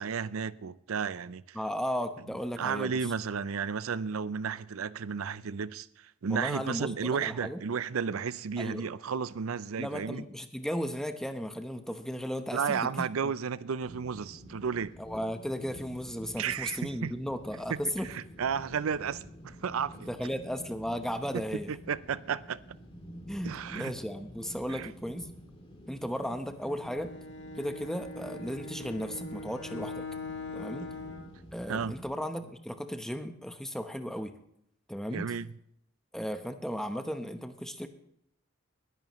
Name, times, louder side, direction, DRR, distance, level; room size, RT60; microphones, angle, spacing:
voice 1, 0.0-1.6 2.6-10.2 12.5-14.9 16.4-17.1 17.7-20.1 21.3-22.6 23.4-23.9 24.7-24.9 30.8-30.9 31.7-32.0 35.1-35.5, right 6 dB, 85° right, 0.5 m, -33 dB
voice 2, 1.5-3.1 6.3-7.6 8.6-8.9 9.8-13.3 15.0-18.1 20.1-21.8 23.3-25.3 25.9-27.1 27.6-30.1 30.5-30.9 31.5-34.4 34.9-35.3 36.1-37.9, equal, ahead, 0.9 m, -35 dB
sound 1, 13.8-32.1, equal, 25° left, 2.5 m, -49 dB
Bowed string instrument, 26.6-31.4, left 3 dB, 60° left, 1.7 m, -42 dB
20.5 x 11.0 x 3.1 m
head